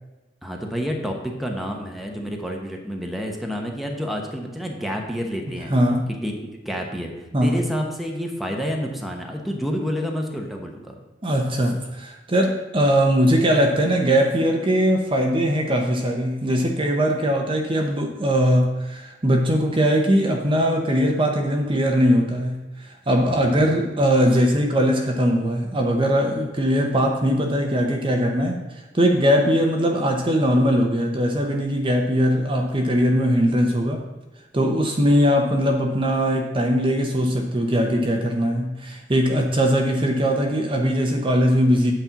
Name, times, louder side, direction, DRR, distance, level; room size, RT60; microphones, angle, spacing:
voice 1, 0.4-5.7 6.2-6.3 6.6-10.9 23.3-23.7, equal, ahead, 1 dB, 1.0 m, -29 dB
voice 2, 5.7-6.1 7.3-7.6 11.2-28.6 28.9-34.0 34.5-41.9, equal, 30° right, 2 dB, 0.8 m, -20 dB
8.3 x 4.4 x 6.9 m, 1.1 s
head